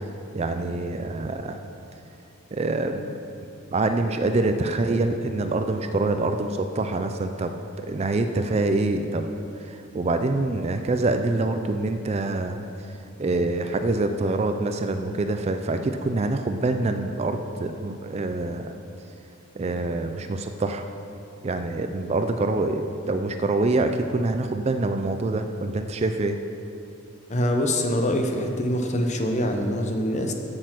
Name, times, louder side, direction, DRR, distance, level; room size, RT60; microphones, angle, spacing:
voice 1, 0.3-1.6 2.5-3.2 3.7-9.2 9.6-12.7 13.2-18.8 19.6-20.8 21.4-26.4, right 2 dB, 30° right, 7 dB, 0.4 m, -25 dB
voice 2, 27.3-30.3, left 1 dB, 35° left, 4 dB, 0.8 m, -24 dB
8.7 x 8.1 x 6.1 m, 2.8 s
head